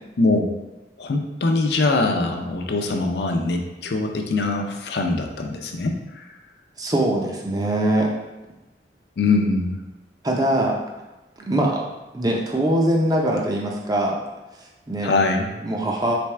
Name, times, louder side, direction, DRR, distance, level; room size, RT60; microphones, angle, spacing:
voice 1, 0.2-0.5 1.0-6.2 9.2-9.8 15.0-15.5, left 3 dB, 65° left, 3 dB, 0.5 m, -22 dB
voice 2, 6.8-8.1 10.2-10.8 11.5-11.9 12.1-14.2 14.9-15.1 15.6-16.1, right 1 dB, 20° right, 0 dB, 0.5 m, -22 dB
3.4 x 3.4 x 3.3 m, 1.1 s
head